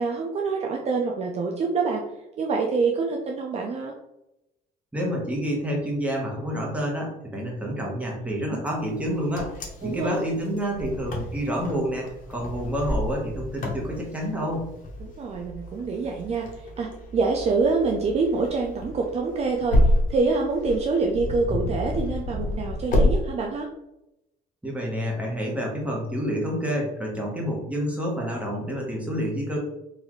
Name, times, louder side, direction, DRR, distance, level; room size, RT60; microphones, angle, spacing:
voice 1, 0.0-2.1 2.4-3.9 8.5-8.7 9.8-10.1 15.0-19.8 20.1-23.7, right 4 dB, 40° right, 1 dB, 0.5 m, -26 dB
voice 2, 4.9-14.7 24.6-29.6, equal, 10° right, -2 dB, 1.2 m, -28 dB
Wind, 9.0-23.1, left 1 dB, 50° left, 1.0 m, -28 dB
3.9 x 2.6 x 3.1 m, 0.89 s
cardioid pair, 110°, 17 cm